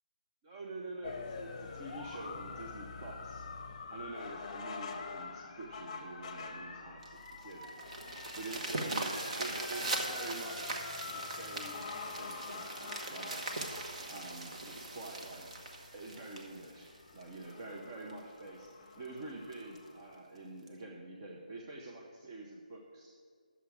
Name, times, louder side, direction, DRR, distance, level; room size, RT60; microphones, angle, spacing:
voice 1, 0.4-3.4 3.9-7.7 8.3-9.1 9.4-13.6 14.1-15.5 15.9-18.7 19.0-23.1, right 2 dB, 30° right, -2 dB, 0.9 m, -46 dB
sound 1, 1.0-20.2, left 5 dB, 30° left, 0.8 m, -46 dB
sound 2, 7.0-17.5 18.1-18.2 18.6-18.7 19.0-19.1 19.5-19.8 20.7-20.8, right 2 dB, 50° right, 1.3 m, -40 dB
10.0 x 7.3 x 4.8 m, 2.1 s
figure-of-eight pair, 160°, 5 cm